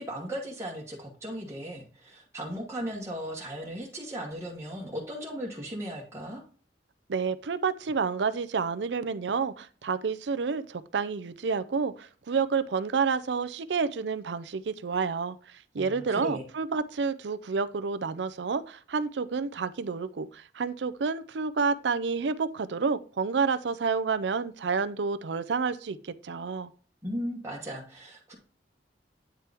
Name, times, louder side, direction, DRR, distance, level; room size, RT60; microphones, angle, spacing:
voice 1, 0.0-6.4 15.8-16.4 27.0-28.3, equal, 15° right, -4 dB, 1.2 m, -37 dB
voice 2, 7.1-26.7, right 5 dB, 80° right, 14 dB, 0.5 m, -29 dB
9.0 x 4.5 x 3.4 m, 0.41 s
head